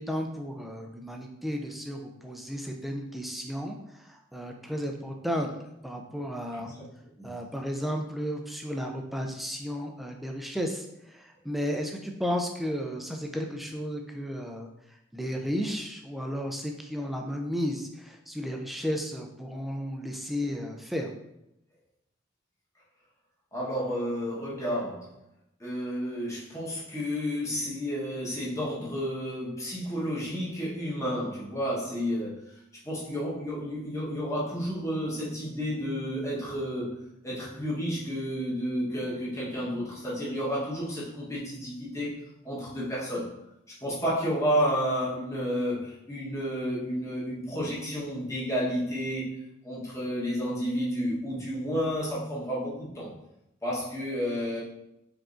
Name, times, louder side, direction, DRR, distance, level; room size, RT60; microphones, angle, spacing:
voice 1, 0.0-3.8 4.1-5.5 5.8-6.7 7.2-14.7 15.1-21.1, equal, ahead, 2 dB, 0.3 m, -33 dB
voice 2, 6.5-6.8 7.2-7.4 23.5-25.1 25.6-32.4 32.8-37.0 37.2-42.2 42.4-43.3 43.8-49.3 49.6-53.1 53.6-54.6, equal, 15° left, -7 dB, 1.1 m, -31 dB
4.8 x 3.6 x 2.5 m, 0.85 s
head